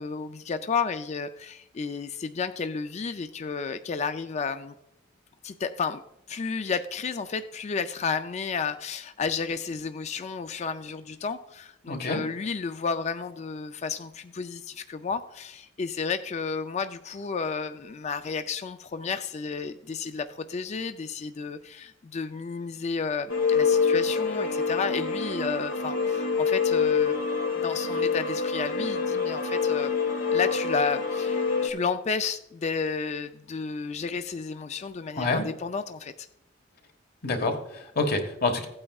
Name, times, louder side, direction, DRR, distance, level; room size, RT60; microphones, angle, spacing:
voice 1, 0.0-4.7 5.4-6.0 6.3-27.2 27.5-29.9 30.3-36.3, left 5 dB, 35° left, 9 dB, 0.4 m, -32 dB
voice 2, 11.8-12.2 35.1-35.4 37.2-38.7, left 3 dB, 50° left, 5 dB, 1.4 m, -27 dB
sound 1, 23.3-31.7, left 5 dB, 75° left, 1.3 m, -26 dB
16.0 x 8.7 x 2.3 m, 0.83 s
head